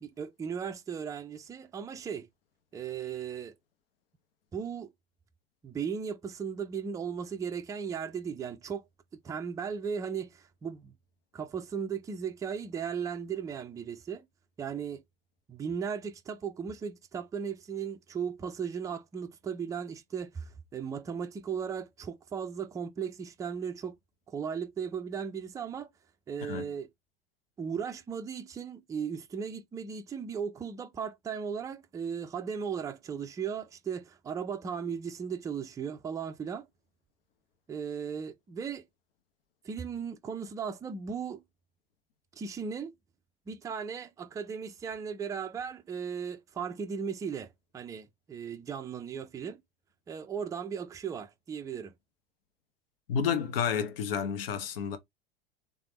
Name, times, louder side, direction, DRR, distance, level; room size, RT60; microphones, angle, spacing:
voice 1, 0.0-2.3 2.7-3.5 4.5-4.9 5.6-8.8 9.2-11.0 11.3-14.3 14.6-15.0 15.5-24.0 24.3-25.9 26.3-26.9 27.6-36.7 37.7-38.9 39.6-41.4 42.3-42.9 43.5-49.6 50.1-51.9, right 7 dB, 10° right, 0.4 m, -36 dB
voice 2, 53.1-55.0, left 7 dB, 60° left, 0.9 m, -30 dB
3.6 x 3.3 x 3.0 m
figure-of-eight pair, 85°, 32 cm